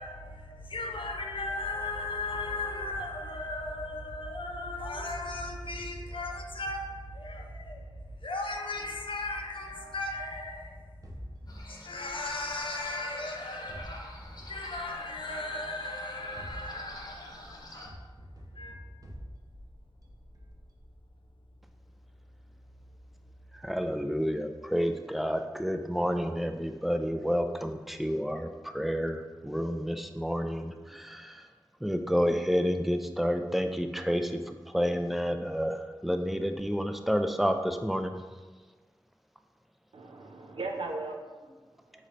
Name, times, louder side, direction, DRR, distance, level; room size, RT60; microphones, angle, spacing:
voice 1, 0.0-10.8 11.6-14.2 14.5-17.9 18.5-18.8, left 2 dB, 75° left, 0.6 m, -36 dB
sound 1, 11.0-13.2 13.7-15.5 16.2-21.3, equal, 45° right, 0.7 m, -48 dB
sound 2, 11.5-17.9, left 1 dB, 50° left, 0.9 m, -49 dB
voice 2, 23.5-31.5 31.8-38.1, equal, ahead, 0.3 m, -30 dB
voice 3, 39.9-42.1, right 3 dB, 85° right, 0.5 m, -39 dB
4.2 x 3.1 x 3.9 m
wide cardioid pair, 55°, 9 cm